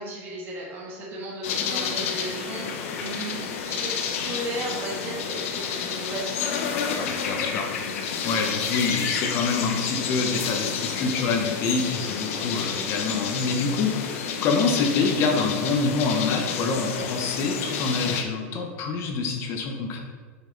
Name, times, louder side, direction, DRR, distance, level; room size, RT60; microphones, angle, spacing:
voice 1, 0.0-7.1, right 1 dB, 30° right, -4 dB, 1.6 m, -35 dB
sound 1, 1.4-18.2, left 6 dB, 70° left, 0.9 m, -30 dB
voice 2, 7.0-20.0, left 4 dB, 35° left, 2 dB, 0.9 m, -26 dB
6.4 x 5.1 x 3.9 m, 1.5 s
supercardioid pair, 160°, 8 cm